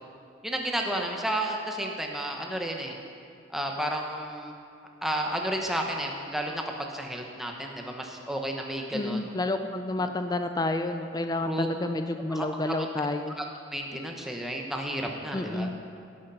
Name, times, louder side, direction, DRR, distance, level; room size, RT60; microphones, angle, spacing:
voice 1, 0.4-2.9 3.5-4.5 5.0-9.3 10.0-10.1 11.4-11.7 12.3-12.8 13.4-13.5 13.7-15.7, right 1 dB, ahead, 1 dB, 1.0 m, -32 dB
voice 2, 8.9-13.3 15.3-15.7, left 2 dB, 20° left, 7 dB, 0.4 m, -30 dB
17.0 x 6.5 x 5.6 m, 2.3 s
head